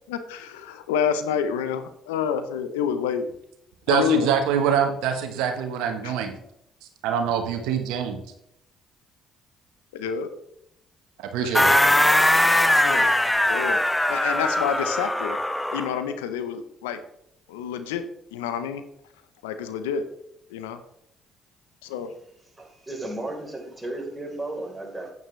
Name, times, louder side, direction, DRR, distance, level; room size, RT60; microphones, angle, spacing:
voice 1, 0.1-3.3 3.9-4.4 6.0-6.2 9.9-10.3 11.4-11.6 12.8-13.1 13.5-13.8 14.1-15.4 15.7-17.0 17.5-18.8 19.4-20.0 20.5-20.8 21.8-22.1, left 8 dB, 90° left, 0.8 m, -28 dB
voice 2, 3.9-6.3 7.0-8.2 11.3-11.7, right 8 dB, 80° right, 1.1 m, -24 dB
sound 1, 11.5-16.0, left 1 dB, 10° left, 0.8 m, -21 dB
voice 3, 22.6-25.1, right 2 dB, 15° right, 3.9 m, -34 dB
9.2 x 9.2 x 3.2 m
hypercardioid pair, 55°, 0 cm